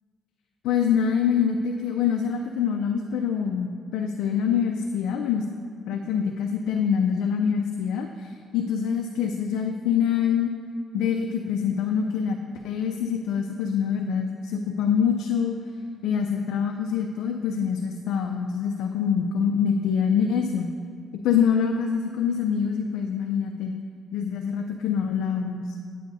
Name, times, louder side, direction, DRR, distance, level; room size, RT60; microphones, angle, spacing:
voice 1, 0.6-5.4 5.9-10.5 10.9-12.4 12.6-15.6 16.0-20.7 21.1-23.7 24.1-25.8, left 7 dB, 85° left, 4 dB, 0.4 m, -25 dB
9.2 x 9.1 x 2.7 m, 2.2 s
cardioid pair, 85°, 0 cm